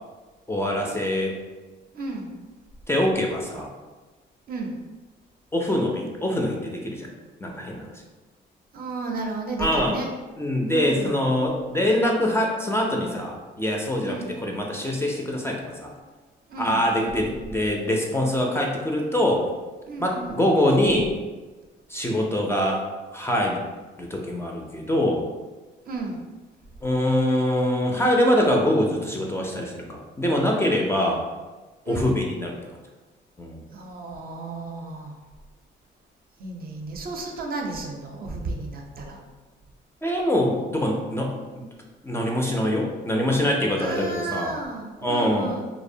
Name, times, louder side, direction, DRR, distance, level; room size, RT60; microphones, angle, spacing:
voice 1, 0.5-1.4 2.9-3.7 5.5-7.1 7.4-8.0 9.6-10.0 10.4-15.9 16.6-19.5 20.0-21.1 21.9-22.9 23.1-23.6 24.0-25.3 26.8-31.2 31.9-32.5 33.4-33.6 40.0-41.7 42.0-44.5 45.0-45.5, left 1 dB, 15° left, -1 dB, 0.3 m, -24 dB
voice 2, 1.9-2.4 4.5-4.8 8.7-10.1 10.7-11.2 14.0-14.4 16.5-16.8 19.9-20.4 25.8-26.4 31.9-32.2 33.7-35.2 36.4-39.2 43.8-45.6, right 3 dB, 50° right, 1 dB, 0.5 m, -33 dB
2.5 x 2.0 x 2.6 m, 1.2 s
cardioid pair, 90°, 20 cm